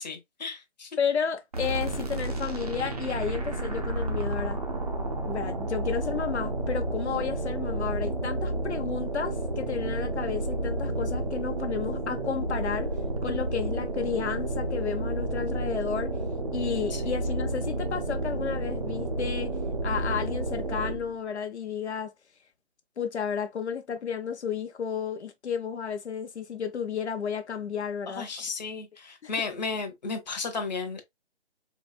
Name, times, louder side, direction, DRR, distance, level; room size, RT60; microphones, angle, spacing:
voice 1, 0.0-0.9 16.9-17.1 28.1-31.0, left 4 dB, 40° left, 0.8 m, -34 dB
voice 2, 1.0-4.6 5.3-12.9 13.2-16.2 16.5-19.5 19.8-22.1 23.0-28.2 29.2-29.3, left 7 dB, 75° left, 0.7 m, -32 dB
sound 1, 1.5-21.2, right 2 dB, 35° right, 0.6 m, -31 dB
4.0 x 2.6 x 2.3 m
hypercardioid pair, 165°, 34 cm